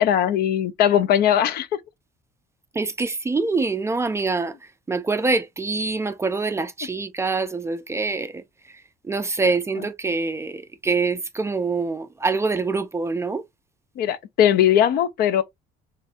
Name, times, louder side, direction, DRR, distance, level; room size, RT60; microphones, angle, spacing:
voice 1, 0.0-1.7 9.8-9.9 14.0-15.4, left 10 dB, 65° left, 0.5 m, -19 dB
voice 2, 2.8-4.5 4.9-8.3 9.1-13.4, right 3 dB, 15° right, 0.3 m, -25 dB
3.2 x 2.5 x 2.7 m
cardioid pair, 110°, 17 cm